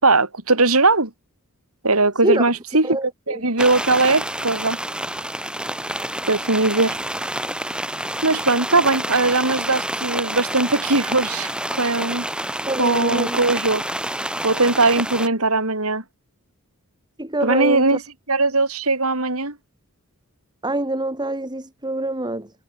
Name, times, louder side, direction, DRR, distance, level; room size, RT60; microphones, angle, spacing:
voice 1, 0.0-1.1 1.8-3.0 3.3-4.8 6.3-7.0 8.2-12.3 12.8-13.9 14.4-16.0 17.4-18.0 18.3-19.6, right 3 dB, 70° right, 5.3 m, -19 dB
voice 2, 2.8-3.4 12.7-13.4 17.2-18.0 20.6-22.5, right 1 dB, 20° right, 5.2 m, -25 dB
sound 1, 3.6-15.3, right 1 dB, 5° right, 7.1 m, -28 dB
head